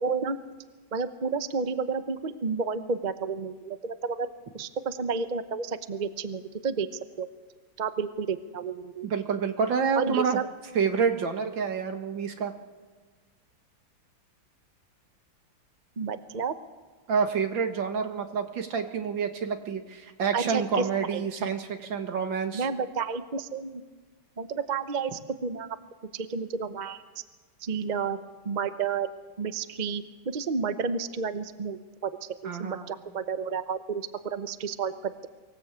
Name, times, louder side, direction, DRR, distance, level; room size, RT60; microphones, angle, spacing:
voice 1, 0.0-0.4 0.9-4.3 4.5-6.9 7.2-7.3 7.8-9.1 9.9-10.5 16.0-16.5 20.3-21.5 22.5-23.8 24.4-25.7 26.1-27.0 27.6-29.1 29.4-35.3, right 5 dB, 40° right, 11 dB, 0.6 m, -31 dB
voice 2, 9.0-10.4 10.7-12.5 17.1-22.7 32.4-32.9, right 6 dB, 70° right, 6 dB, 2.4 m, -28 dB
24.0 x 16.5 x 8.3 m, 1.4 s
omnidirectional pair, 2.1 m